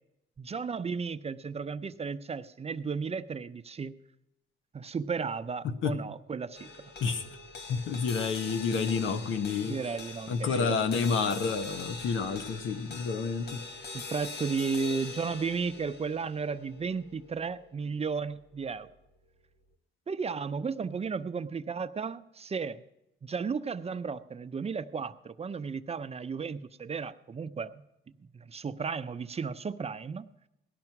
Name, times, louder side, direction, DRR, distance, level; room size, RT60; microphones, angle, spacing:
voice 1, 0.4-3.9 4.7-6.9 9.6-10.8 13.9-18.9 20.1-22.8 23.2-27.8 28.3-30.3, right 5 dB, 30° right, 11 dB, 0.7 m, -34 dB
voice 2, 5.6-5.9 7.0-7.2 7.7-9.8 10.3-13.6, left 5 dB, 80° left, 9 dB, 1.2 m, -29 dB
sound 1, 6.5-19.0, left 3 dB, 55° left, 1.3 m, -44 dB
18.0 x 12.0 x 5.9 m, 0.89 s
cardioid pair, 90°, 20 cm